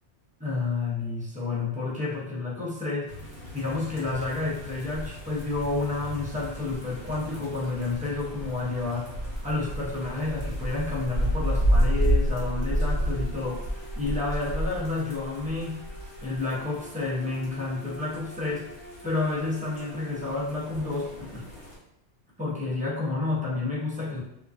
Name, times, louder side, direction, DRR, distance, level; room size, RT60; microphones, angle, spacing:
voice 1, 0.4-3.1 3.5-9.1 9.4-13.7 13.9-15.8 16.2-18.7 19.0-21.4 22.4-24.2, left 3 dB, 10° right, -6 dB, 0.4 m, -30 dB
sound 1, 3.1-21.8, equal, 75° left, 1.0 m, -31 dB
sound 2, 6.8-20.2, equal, 30° left, 0.7 m, -49 dB
2.4 x 2.1 x 2.4 m, 0.79 s
omnidirectional pair, 1.2 m